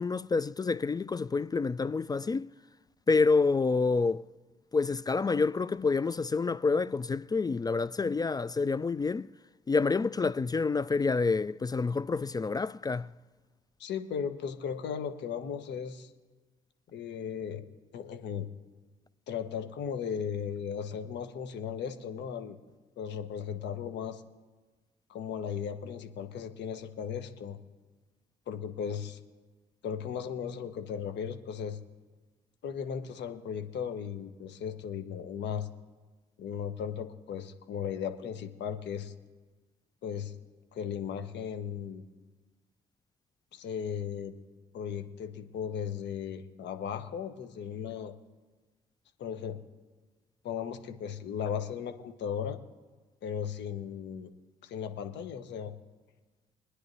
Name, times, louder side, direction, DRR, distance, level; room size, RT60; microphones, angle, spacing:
voice 1, 0.0-2.5 3.1-4.2 4.7-9.3 9.7-13.1, left 4 dB, 20° left, 0.3 m, -28 dB
voice 2, 13.8-16.1 16.9-17.6 17.9-18.5 19.3-22.6 23.0-24.2 25.1-27.6 28.5-29.2 29.8-31.8 32.6-35.7 36.4-39.1 40.0-40.3 40.7-42.0 43.5-44.3 44.7-48.1 49.2-49.6 50.4-52.6 53.2-54.3 54.6-55.7, left 7 dB, 60° left, 1.3 m, -36 dB
24.0 x 9.9 x 2.8 m
hypercardioid pair, 45°, 20 cm